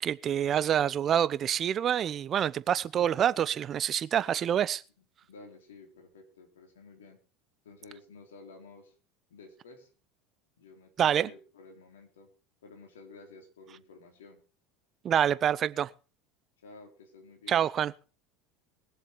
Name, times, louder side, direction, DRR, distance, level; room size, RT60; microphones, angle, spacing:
voice 1, 0.0-4.8 11.0-11.3 15.0-15.9 17.5-17.9, right 9 dB, 40° right, 0.8 m, -27 dB
voice 2, 5.3-7.2 7.6-8.9 9.3-9.9 10.6-12.3 12.6-14.4 16.6-17.6, left 3 dB, 80° left, 3.7 m, -52 dB
21.0 x 7.4 x 5.2 m
hypercardioid pair, 80°, 0 cm